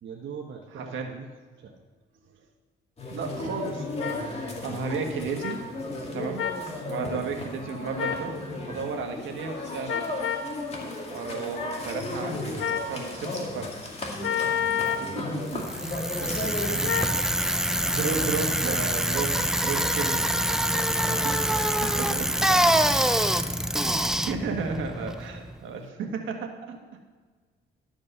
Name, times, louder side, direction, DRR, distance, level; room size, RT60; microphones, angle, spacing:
voice 1, 0.0-1.3 1.6-1.7 6.9-7.1 8.9-9.0 15.0-15.7 16.2-18.8 19.1-19.2 20.6-22.8, right 6 dB, 60° right, 0 dB, 1.1 m, -41 dB
voice 2, 0.7-1.1 2.4-2.5 3.1-5.6 6.1-6.5 6.9-8.3 8.7-10.4 11.1-13.7 16.9-17.0 17.5-20.3 20.9-21.3 21.8-22.1 22.5-22.6 23.8-26.8, right 5 dB, 80° right, 3 dB, 1.6 m, -33 dB
sound 1, 3.0-16.7, left 2 dB, 30° left, 2.2 m, -35 dB
sound 2, 4.0-4.2 5.4-5.6 6.4-6.6 8.0-8.3 9.9-10.5 12.6-12.9 14.2-15.1 16.9-17.2, left 8 dB, 85° left, 0.8 m, -28 dB
Bicycle, 15.5-25.6, right 1 dB, 5° right, 0.5 m, -25 dB
12.5 x 5.3 x 6.7 m, 1.4 s
cardioid pair, 90°, 20 cm